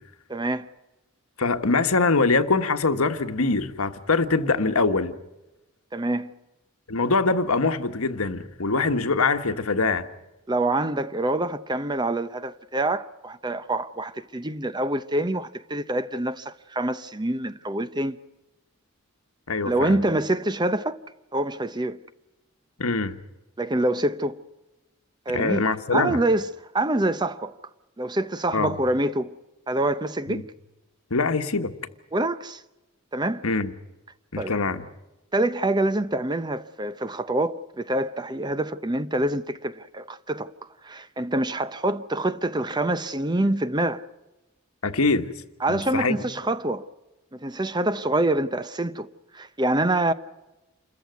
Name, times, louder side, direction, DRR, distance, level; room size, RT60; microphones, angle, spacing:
voice 1, 0.3-0.7 5.9-6.3 10.5-18.2 19.6-21.0 21.3-22.0 23.6-24.4 25.3-26.5 26.7-27.6 28.0-29.4 29.7-30.5 32.1-32.6 33.1-33.4 34.4-34.5 35.3-40.5 40.8-44.0 45.6-46.9 47.3-49.1 49.3-50.1, right 1 dB, 20° right, 0.7 m, -26 dB
voice 2, 1.4-5.2 6.9-10.1 19.5-20.0 22.8-23.1 25.3-26.2 28.5-28.7 30.3-30.4 31.1-31.7 33.4-33.7 34.3-34.8 44.8-45.3 45.7-46.1, left 3 dB, 85° left, 1.4 m, -23 dB
28.0 x 14.5 x 9.3 m
head